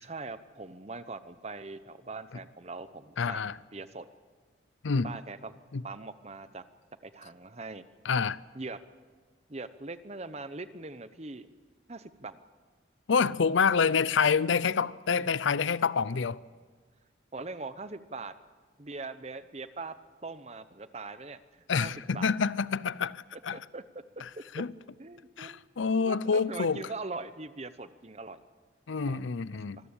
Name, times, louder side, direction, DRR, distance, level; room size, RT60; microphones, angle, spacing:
voice 1, 0.0-3.4 3.7-4.1 5.0-5.6 5.8-6.6 7.0-7.8 8.5-8.8 9.5-11.5 11.9-12.4 17.3-18.3 18.8-19.9 20.2-22.3 23.3-24.2 25.0-25.6 26.0-28.4 29.1-29.2 29.5-29.6, right 3 dB, 35° right, 0.9 m, -41 dB
voice 2, 3.2-3.5 4.8-5.1 5.7-5.8 8.0-8.4 13.1-16.4 21.7-23.6 24.5-24.7 25.4-26.8 28.9-29.8, left 5 dB, 75° left, 0.6 m, -27 dB
25.5 x 14.0 x 8.8 m
head